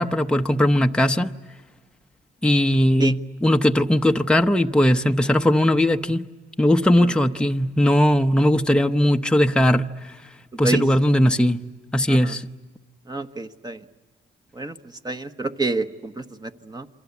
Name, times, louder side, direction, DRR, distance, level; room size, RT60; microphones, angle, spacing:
voice 1, 0.0-1.3 2.4-6.3 6.6-10.1 10.6-11.6 11.9-12.5, left 1 dB, 5° left, 0.9 m, -19 dB
voice 2, 13.1-13.8 14.5-14.7 15.0-16.9, right 3 dB, 20° right, 1.2 m, -27 dB
28.0 x 23.5 x 8.4 m
cardioid pair, 90°, 20 cm